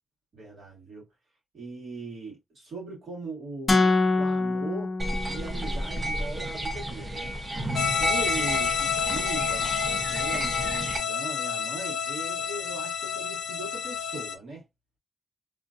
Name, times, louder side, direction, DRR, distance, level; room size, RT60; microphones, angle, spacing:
voice 1, 0.3-1.0 1.5-4.9 5.3-7.4 7.9-14.6, right 3 dB, 65° right, 2.2 m, -40 dB
sound 1, 3.7-5.8, left 3 dB, 35° left, 0.7 m, -25 dB
sound 2, 5.0-11.0, right 1 dB, 25° right, 0.9 m, -32 dB
sound 3, 7.7-14.4, left 7 dB, 85° left, 0.5 m, -29 dB
3.6 x 2.6 x 2.5 m
cardioid pair, 85°, 0 cm